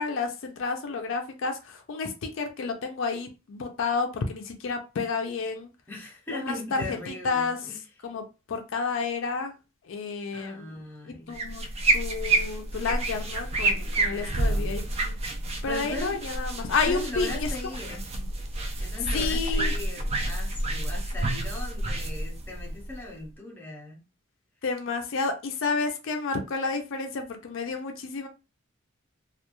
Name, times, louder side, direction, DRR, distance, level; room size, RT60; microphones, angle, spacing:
voice 1, 0.0-5.7 6.3-7.6 8.0-8.2 8.5-9.5 9.9-10.7 11.1-11.6 11.9-15.1 15.6-17.5 17.9-18.3 19.1-19.7 24.6-28.3, left 4 dB, 60° left, 0.4 m, -30 dB
voice 2, 5.9-7.8 10.3-11.3 14.0-14.7 15.6-16.2 16.9-18.1 18.8-24.0, left 2 dB, 10° left, 0.7 m, -39 dB
sound 1, 11.3-23.3, right 2 dB, 30° right, 0.3 m, -29 dB
2.3 x 2.2 x 2.9 m
head